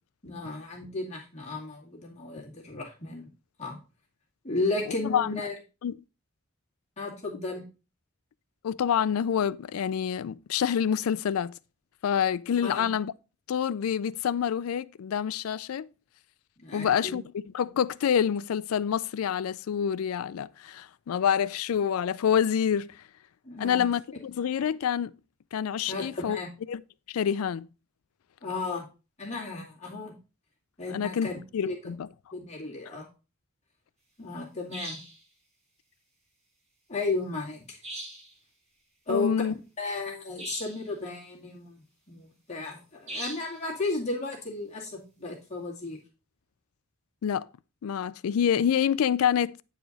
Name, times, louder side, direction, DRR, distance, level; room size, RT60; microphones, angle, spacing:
voice 1, 0.2-3.3 3.6-3.8 4.4-5.5 7.0-7.6 12.6-12.9 16.6-17.2 23.4-23.9 25.9-26.5 28.4-28.9 29.2-30.1 30.8-31.4 31.6-31.8 32.3-33.1 34.2-35.0 36.9-37.8 39.1-39.3 39.8-46.0, left 3 dB, 30° left, 2.4 m, -34 dB
voice 2, 5.1-5.4 5.8-5.9 8.6-11.5 12.0-13.1 13.5-15.9 16.7-17.2 17.5-23.0 23.6-25.1 25.5-26.4 26.7-26.8 27.1-27.7 30.9-32.1 39.1-39.5 47.2-47.5 47.8-49.6, left 8 dB, 85° left, 0.4 m, -27 dB
sound 1, 34.7-35.2 37.8-38.3 40.4-40.9 43.1-43.6, right 1 dB, 35° right, 4.0 m, -39 dB
9.0 x 4.9 x 4.0 m
head